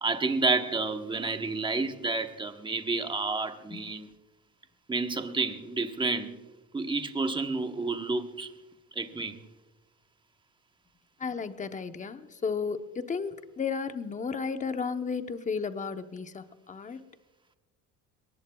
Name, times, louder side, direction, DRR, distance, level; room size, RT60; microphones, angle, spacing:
voice 1, 0.0-4.1 4.9-6.4 6.7-8.5 8.9-9.4, right 3 dB, 15° right, 7 dB, 1.1 m, -30 dB
voice 2, 11.2-17.0, left 5 dB, 20° left, 9 dB, 0.9 m, -33 dB
22.0 x 19.5 x 2.3 m, 1.1 s
cardioid pair, 115°, 36 cm